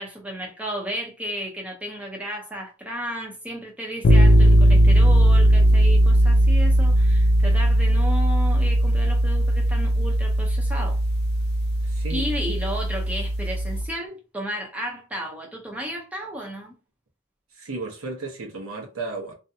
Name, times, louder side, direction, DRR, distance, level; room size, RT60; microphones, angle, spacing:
voice 1, 0.0-11.0 12.1-16.7, equal, 5° right, 0.6 m, -33 dB
sound 1, 4.0-13.9, right 1 dB, 50° left, 0.4 m, -18 dB
voice 2, 17.6-19.3, right 3 dB, 80° right, 0.9 m, -33 dB
2.6 x 2.2 x 2.6 m
head